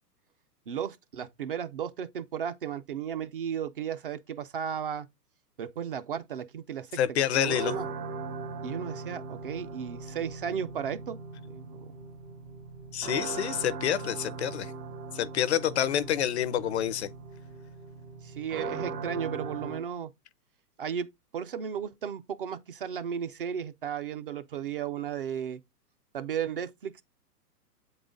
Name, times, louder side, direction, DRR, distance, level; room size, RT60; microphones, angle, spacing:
voice 1, 0.7-5.1 5.6-7.9 8.6-11.2 11.5-11.8 13.5-13.6 18.2-20.1 20.8-21.1 21.3-25.6 26.1-27.0, right 8 dB, 35° right, 0.4 m, -35 dB
voice 2, 7.0-7.7 12.9-14.7 15.1-17.1, left 10 dB, 45° left, 0.4 m, -28 dB
sound 1, 7.5-19.8, right 4 dB, 70° right, 2.2 m, -39 dB
7.8 x 3.9 x 3.7 m
hypercardioid pair, 135°, 48 cm